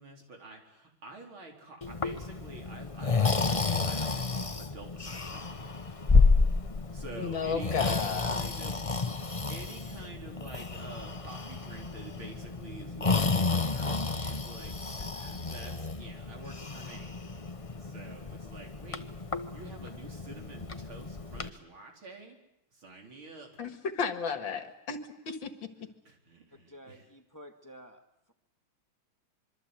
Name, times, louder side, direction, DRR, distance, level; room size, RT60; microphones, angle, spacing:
voice 1, 0.0-5.7 6.9-8.8 9.2-14.0 14.3-14.7 15.1-17.2 17.8-19.0 19.5-22.4 22.7-23.5 26.0-27.1, right 2 dB, 80° right, 2 dB, 5.1 m, -48 dB
Breathing, 1.8-21.5, left 4 dB, 30° left, 0.6 m, -31 dB
voice 2, 7.2-8.4 23.6-25.0 25.3-25.5, left 6 dB, 70° left, 8 dB, 2.5 m, -33 dB
voice 3, 26.5-28.0, equal, 10° left, 5 dB, 1.8 m, -51 dB
26.0 x 24.0 x 8.1 m, 0.82 s
omnidirectional pair, 2.2 m